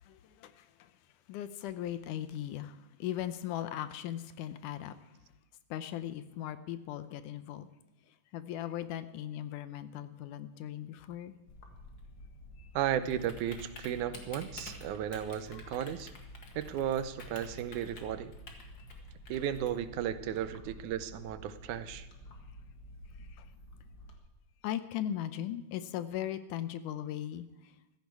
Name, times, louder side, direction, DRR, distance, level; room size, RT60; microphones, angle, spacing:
voice 1, 0.0-0.9 1.3-5.0 5.7-7.7 8.3-11.3 12.6-12.7 15.5-15.6 18.8-18.9 23.2-23.5 24.6-27.7, left 11 dB, 85° left, 12 dB, 2.3 m, -38 dB
Typing, 11.5-24.1, left 1 dB, 40° left, 2.1 m, -49 dB
voice 2, 12.7-16.1 16.5-18.3 19.3-22.1, right 10 dB, 80° right, 12 dB, 2.2 m, -34 dB
16.0 x 14.0 x 4.7 m, 0.96 s
omnidirectional pair, 3.6 m